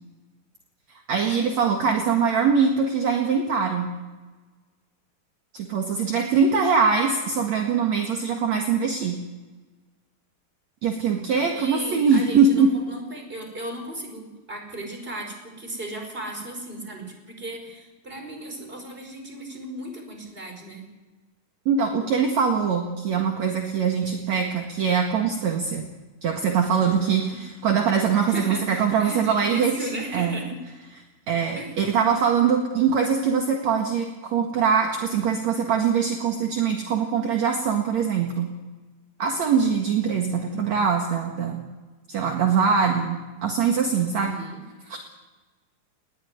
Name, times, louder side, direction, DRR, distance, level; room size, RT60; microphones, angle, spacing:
voice 1, 1.1-3.9 5.5-9.2 10.8-12.7 21.7-25.9 26.2-30.4 31.3-38.5 39.2-41.6 42.1-44.3 44.9-45.0, right 6 dB, 55° right, 2 dB, 2.8 m, -22 dB
voice 2, 11.5-20.8 26.8-27.4 28.2-30.6 31.5-31.8 44.1-44.6, right 1 dB, 15° right, 3 dB, 5.0 m, -36 dB
20.5 x 17.0 x 9.5 m, 1.2 s
omnidirectional pair, 4.1 m